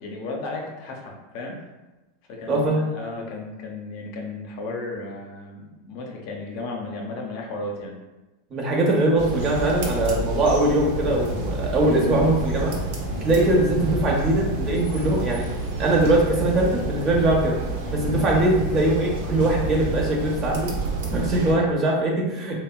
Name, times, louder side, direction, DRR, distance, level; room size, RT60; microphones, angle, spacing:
voice 1, 0.0-1.6 2.3-7.9 13.1-13.3 17.1-17.4 18.0-18.3, left 2 dB, 60° left, 0 dB, 0.6 m, -34 dB
voice 2, 2.5-2.8 8.5-12.8 13.2-15.4 15.8-17.6 17.9-20.7 21.1-22.5, right 1 dB, 35° right, -2 dB, 0.8 m, -21 dB
sound 1, 9.2-21.5, right 2 dB, 70° right, 0.7 m, -29 dB
sound 2, 11.1-19.1, left 2 dB, 15° left, 0.7 m, -41 dB
3.4 x 2.0 x 2.3 m, 1.1 s
hypercardioid pair, 105°, 0 cm